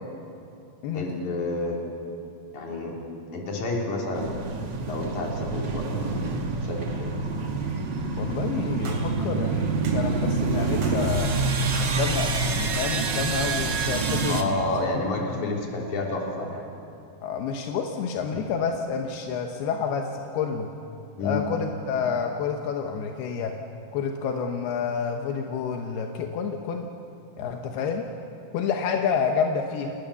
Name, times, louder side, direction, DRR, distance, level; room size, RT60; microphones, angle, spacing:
voice 1, 0.9-1.8 2.5-3.0 3.3-4.5 4.9-6.4 6.6-7.1 14.3-16.6 18.3-18.4 21.2-21.4, left 2 dB, 50° left, -1 dB, 4.5 m, -30 dB
sound 1, 4.1-14.4, right 4 dB, 70° right, 1.0 m, -27 dB
voice 2, 8.2-11.4 11.8-14.7 14.9-15.0 15.3-15.6 17.2-20.7 21.2-23.6 23.9-26.9 27.4-28.1 28.5-30.0, left 6 dB, 85° left, 3 dB, 3.1 m, -29 dB
sound 2, 8.9-9.1 9.8-10.0 10.8-11.0 11.7-12.0 12.7-13.0, right 4 dB, 50° right, 4.1 m, -40 dB
30.0 x 19.5 x 7.0 m, 2.5 s
omnidirectional pair, 4.5 m